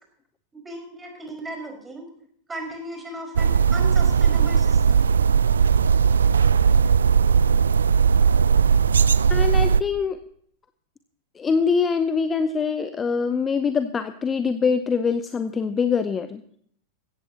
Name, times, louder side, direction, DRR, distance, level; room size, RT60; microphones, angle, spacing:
voice 1, 0.6-2.1 2.5-5.0, right 1 dB, 10° right, 2 dB, 5.0 m, -36 dB
sound 1, 3.4-9.8, right 6 dB, 70° right, 0.4 m, -18 dB
voice 2, 9.3-10.2 11.4-16.4, left 5 dB, 20° left, 11 dB, 0.7 m, -24 dB
16.5 x 14.0 x 2.9 m, 0.62 s
figure-of-eight pair, 90°, 0 cm